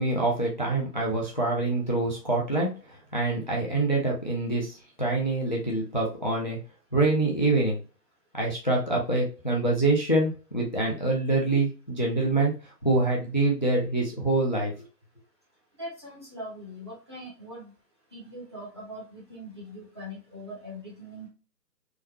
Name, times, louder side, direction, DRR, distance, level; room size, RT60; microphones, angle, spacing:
voice 1, 0.0-6.6 6.9-7.8 8.3-12.5 12.8-14.7, right 2 dB, 30° left, -2 dB, 0.5 m, -25 dB
voice 2, 15.8-17.7 18.1-21.3, equal, 15° right, -6 dB, 0.6 m, -41 dB
3.5 x 2.2 x 3.0 m, 0.34 s
figure-of-eight pair, 145°, 49 cm